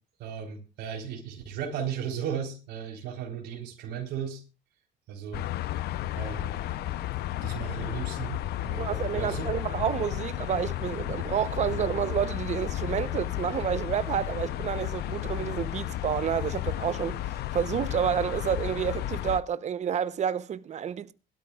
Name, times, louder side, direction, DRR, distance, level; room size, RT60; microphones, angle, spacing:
voice 1, 0.2-4.4 5.1-5.4 6.2-6.5 7.4-9.5, right 8 dB, 80° right, 4.0 m, -35 dB
sound 1, 5.3-19.4, left 13 dB, 70° left, 0.7 m, -33 dB
voice 2, 8.8-17.2 17.5-21.1, right 9 dB, 45° right, 0.8 m, -29 dB
21.5 x 12.5 x 2.4 m
cardioid pair, 110°, 17 cm